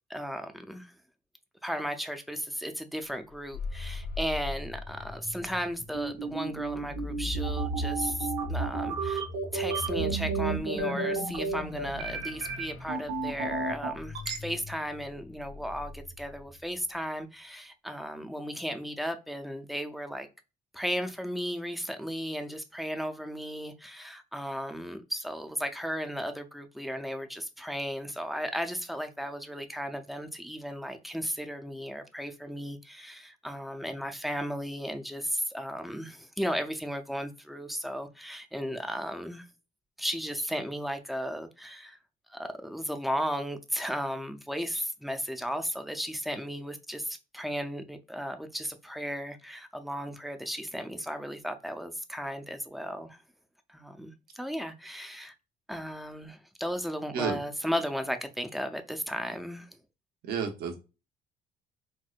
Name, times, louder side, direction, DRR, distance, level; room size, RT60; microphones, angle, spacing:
voice 1, 0.1-0.9 1.6-9.2 9.5-20.3 20.7-39.5 40.0-42.0 42.3-53.2 53.7-55.4 55.7-59.7, equal, ahead, 0.4 m, -35 dB
sound 1, 3.3-16.8, left 4 dB, 55° left, 0.8 m, -40 dB
sound 2, 5.9-14.4, right 4 dB, 90° right, 0.9 m, -31 dB
voice 2, 60.2-60.8, right 6 dB, 70° right, 0.9 m, -31 dB
4.4 x 2.1 x 2.4 m
cardioid pair, 110°, 17 cm